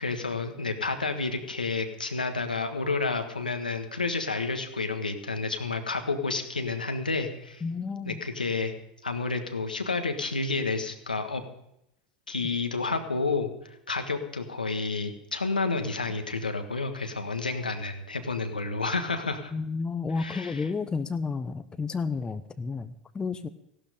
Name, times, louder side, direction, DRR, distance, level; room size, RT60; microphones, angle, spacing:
voice 1, 0.0-7.6 8.0-8.7 9.0-11.4 12.3-13.5 13.9-19.5 20.2-20.7, left 3 dB, 90° left, 6 dB, 1.5 m, -30 dB
voice 2, 7.6-8.2 16.1-16.2 19.5-23.5, left 4 dB, 20° left, 10 dB, 1.0 m, -31 dB
16.0 x 12.0 x 5.1 m, 0.79 s
figure-of-eight pair, 85°, 5 cm